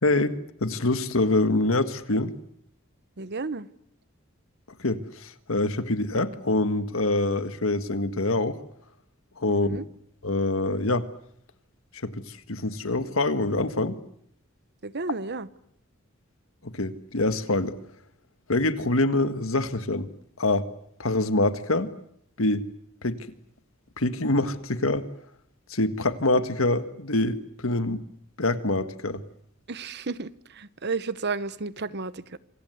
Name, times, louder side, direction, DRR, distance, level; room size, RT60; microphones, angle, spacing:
voice 1, 0.0-2.3 4.8-8.6 9.4-9.8 10.2-11.1 12.0-14.0 16.6-17.8 18.5-20.1 20.4-20.7 21.0-21.9 22.4-22.7 23.0-23.3 24.0-25.1 25.7-28.0 28.4-29.2, left 2 dB, 80° left, 1.7 m, -25 dB
voice 2, 3.2-3.7 9.5-9.8 14.8-15.5 29.7-32.4, right 4 dB, 55° right, 1.0 m, -32 dB
27.0 x 26.0 x 8.0 m
head